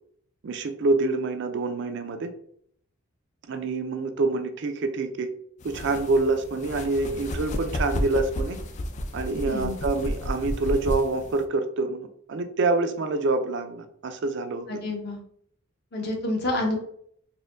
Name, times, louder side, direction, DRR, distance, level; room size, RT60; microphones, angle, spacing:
voice 1, 0.4-2.3 3.5-5.3 5.6-8.6 9.1-14.7, right 3 dB, 55° right, 8 dB, 0.4 m, -26 dB
sound 1, 5.6-11.4, left 1 dB, 35° left, 0.4 m, -32 dB
voice 2, 9.4-9.8 14.7-15.2 15.9-16.8, left 1 dB, 50° left, 1 dB, 0.9 m, -28 dB
4.2 x 2.7 x 2.5 m, 0.64 s
head